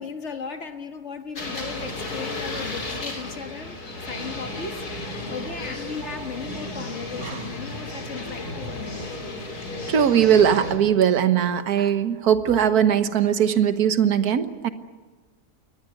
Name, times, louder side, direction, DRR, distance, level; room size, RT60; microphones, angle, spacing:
voice 1, 0.0-9.4, left 5 dB, 45° left, 7 dB, 1.6 m, -36 dB
sound 1, 1.4-10.7, left 2 dB, 70° left, 3.8 m, -34 dB
voice 2, 9.9-14.7, right 8 dB, 70° right, 11 dB, 1.6 m, -20 dB
23.0 x 19.0 x 9.5 m, 1.4 s
omnidirectional pair, 1.7 m